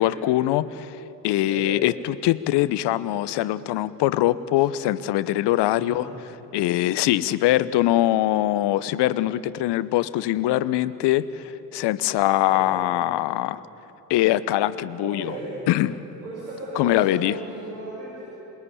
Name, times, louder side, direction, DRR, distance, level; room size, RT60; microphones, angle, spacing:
voice 1, 0.0-6.1 6.5-13.6 14.1-15.3 15.7-16.0 16.7-17.3, left 14 dB, 55° left, 16 dB, 1.1 m, -23 dB
voice 2, 15.0-15.5 16.2-18.2, right 2 dB, 85° right, -7 dB, 7.2 m, -35 dB
27.0 x 21.5 x 9.9 m, 2.9 s
hypercardioid pair, 55°, 48 cm